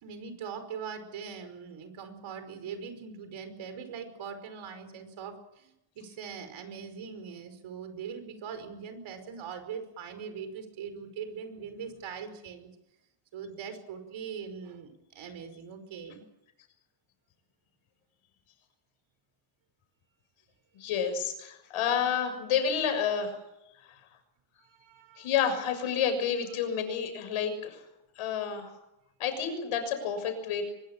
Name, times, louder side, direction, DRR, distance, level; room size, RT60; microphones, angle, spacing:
voice 1, 0.0-12.8 13.3-16.3 24.6-25.3, right 6 dB, 70° right, 9 dB, 5.3 m, -41 dB
voice 2, 20.7-23.4 25.2-27.8 28.2-28.7 29.2-30.7, left 7 dB, 80° left, 7 dB, 6.8 m, -29 dB
24.0 x 21.5 x 7.4 m, 0.87 s
cardioid pair, 115°, 50 cm